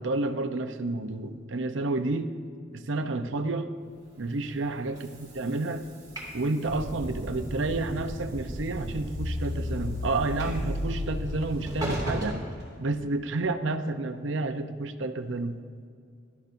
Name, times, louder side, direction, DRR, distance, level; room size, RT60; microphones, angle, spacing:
voice 1, 0.0-2.3 2.7-3.7 4.2-5.9 6.3-12.4 12.8-15.6, right 2 dB, 80° right, 9 dB, 0.7 m, -30 dB
Train / Sliding door, 4.1-13.4, equal, 20° right, 2.4 m, -41 dB
sound 1, 6.6-12.3, right 1 dB, 50° right, 0.7 m, -37 dB
sound 2, 9.1-12.3, left 3 dB, 80° left, 0.6 m, -34 dB
16.0 x 12.0 x 2.6 m, 2.2 s
head